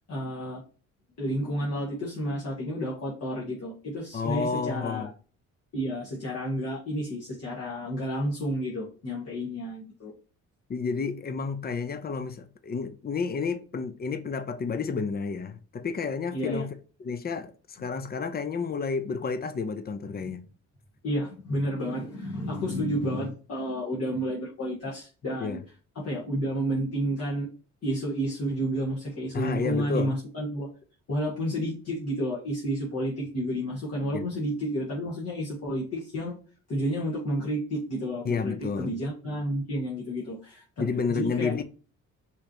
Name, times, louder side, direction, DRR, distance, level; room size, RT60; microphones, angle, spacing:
voice 1, 0.1-0.6 1.2-5.1 5.7-10.1 16.3-16.7 17.8-17.9 20.1-20.3 21.0-25.6 26.0-27.5 27.8-30.7 31.1-36.4 36.7-41.5, equal, 55° left, 1.8 m, -31 dB
voice 2, 4.1-5.1 10.7-16.7 17.0-20.5 25.4-25.6 29.3-30.1 34.1-34.2 38.2-39.0 40.8-41.6, left 5 dB, 30° left, 0.7 m, -31 dB
5.6 x 3.2 x 2.9 m
cardioid pair, 90°, 30 cm